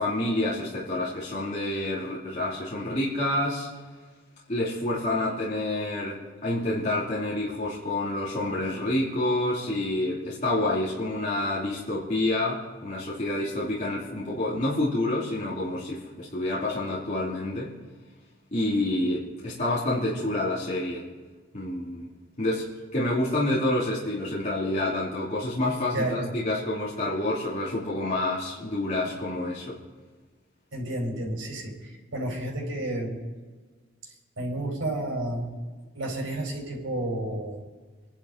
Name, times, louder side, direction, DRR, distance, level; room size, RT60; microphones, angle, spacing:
voice 1, 0.0-3.7 4.5-17.7 18.5-21.1 21.5-22.1 22.4-22.7 22.9-29.8, left 1 dB, 40° left, -7 dB, 2.9 m, -28 dB
voice 2, 25.9-26.3 30.7-33.2 34.4-35.5 35.9-37.6, right 1 dB, 85° right, 0 dB, 4.7 m, -31 dB
26.5 x 11.5 x 4.0 m, 1.4 s
head